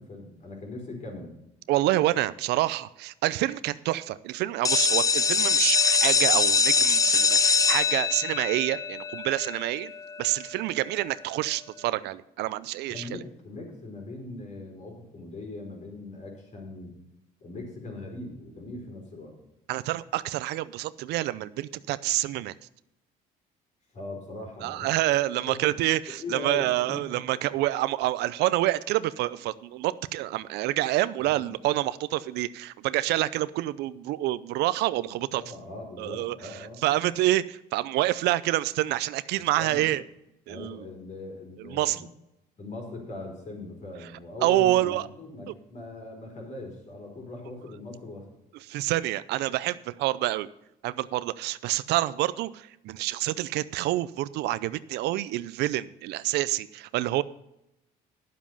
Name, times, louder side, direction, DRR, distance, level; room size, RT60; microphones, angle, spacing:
voice 1, 0.0-1.3 12.9-17.0 17.4-19.4 23.9-24.9 25.5-25.7 26.2-27.0 31.2-31.5 35.0-36.9 39.3-39.9 40.5-42.1 42.6-48.3, left 2 dB, 45° left, 1 dB, 4.5 m, -40 dB
voice 2, 1.7-9.9 10.2-13.2 19.7-22.5 24.6-35.4 36.0-36.3 36.8-40.0 40.5-40.8 41.6-42.0 44.4-45.1 45.5-45.6 48.7-50.5 50.8-57.2, right 16 dB, 85° right, 16 dB, 0.5 m, -27 dB
sound 1, 4.6-10.3, left 5 dB, 20° left, 0.5 m, -23 dB
11.0 x 7.4 x 5.4 m, 0.86 s
cardioid pair, 110°, 17 cm